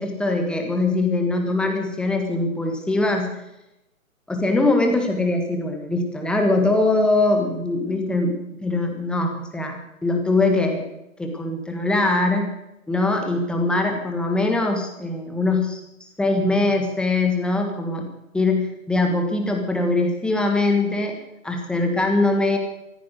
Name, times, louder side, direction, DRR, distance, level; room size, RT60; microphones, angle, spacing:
voice 1, 0.0-3.4 4.3-10.8 11.2-12.5 12.9-15.8 16.2-18.1 18.3-21.2 21.4-22.6, left 2 dB, ahead, 3 dB, 1.4 m, -22 dB
14.5 x 14.5 x 6.4 m, 0.89 s
figure-of-eight pair, 135°, 41 cm